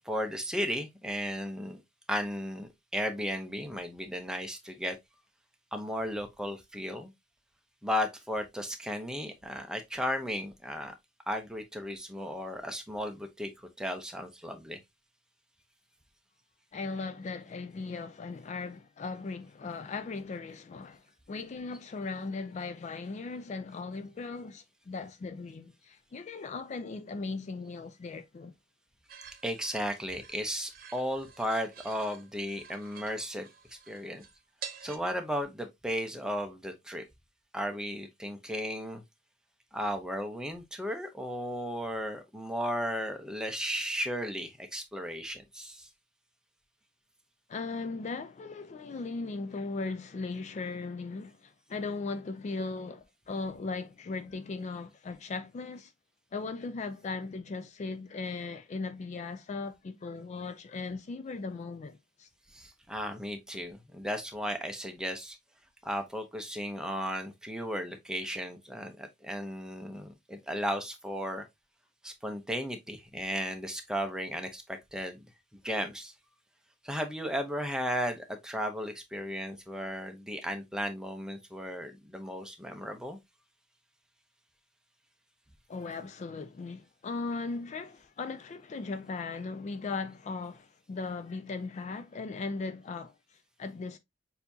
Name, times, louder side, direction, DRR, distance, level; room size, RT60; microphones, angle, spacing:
voice 1, 0.0-1.8 2.1-5.0 5.7-7.1 7.8-10.9 11.3-13.5 13.8-14.8 29.4-33.5 33.9-34.2 34.8-37.0 37.5-39.0 39.7-45.9 62.5-65.4 65.8-71.5 72.0-75.3 75.6-76.1 76.8-83.2, equal, 5° right, 0.7 m, -35 dB
voice 2, 16.7-28.5 47.5-55.9 56.3-62.3 85.7-94.0, left 3 dB, 35° left, 0.3 m, -38 dB
sound 1, 29.1-35.0, right 6 dB, 50° right, 1.0 m, -49 dB
6.6 x 2.8 x 2.7 m
head